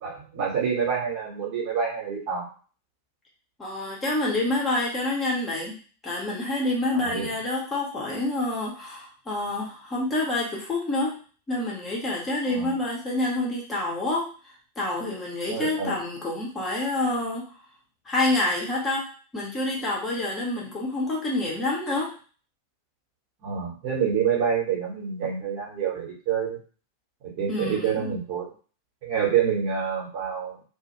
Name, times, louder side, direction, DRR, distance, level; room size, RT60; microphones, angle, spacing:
voice 1, 0.0-2.4 6.9-7.3 12.5-12.7 15.5-16.0 23.4-26.6 27.4-28.5 29.0-30.6, right 7 dB, 45° right, -4 dB, 1.1 m, -27 dB
voice 2, 3.6-11.2 11.5-17.5 18.1-19.1 19.3-22.1 27.5-28.1, left 2 dB, 20° left, -4 dB, 0.8 m, -28 dB
2.3 x 2.1 x 2.9 m, 0.39 s
figure-of-eight pair, 90°, 0 cm